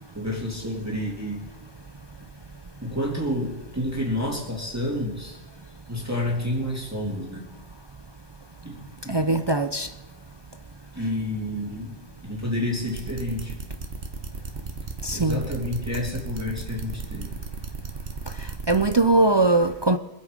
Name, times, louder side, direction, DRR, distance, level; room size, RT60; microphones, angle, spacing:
voice 1, 0.1-1.4 2.8-5.4 5.9-7.5 8.6-9.4 10.9-12.0 12.2-13.6 15.1-17.3, left 1 dB, 15° right, 2.8 m, -29 dB
voice 2, 9.1-9.9 15.0-15.5 18.7-20.0, right 2 dB, 40° right, 0.4 m, -21 dB
sound 1, 12.9-19.0, right 4 dB, 80° right, 1.6 m, -35 dB
24.5 x 8.2 x 5.2 m
omnidirectional pair, 1.1 m